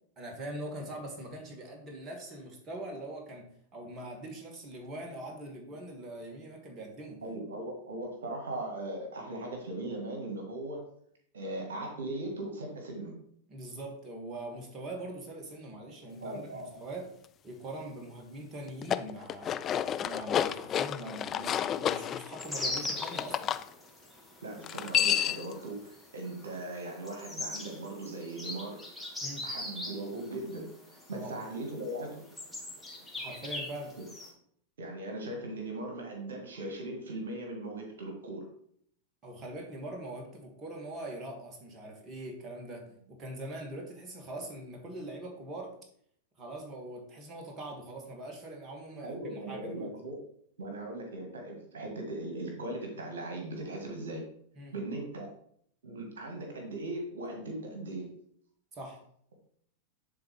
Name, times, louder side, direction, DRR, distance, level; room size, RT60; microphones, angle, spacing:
voice 1, 0.2-7.2 13.5-17.1 17.4-19.6 20.0-23.6 29.2-29.5 31.1-31.3 33.2-33.9 39.2-45.7 46.4-49.9 54.6-54.7 58.7-59.0, right 1 dB, 30° right, 0 dB, 2.0 m, -42 dB
voice 2, 7.2-10.8 11.3-13.1 16.2-16.7 24.4-28.8 29.4-32.3 34.8-38.5 46.4-46.5 49.0-50.2 50.6-54.2 54.7-55.3 55.8-58.1, right 2 dB, 75° right, 2 dB, 1.6 m, -39 dB
sound 1, 18.7-23.6 24.6-25.5, left 10 dB, 30° left, 0.4 m, -31 dB
sound 2, 22.4-34.3, left 1 dB, ahead, 1.9 m, -42 dB
10.5 x 4.0 x 3.3 m, 0.65 s
figure-of-eight pair, 95°, 0 cm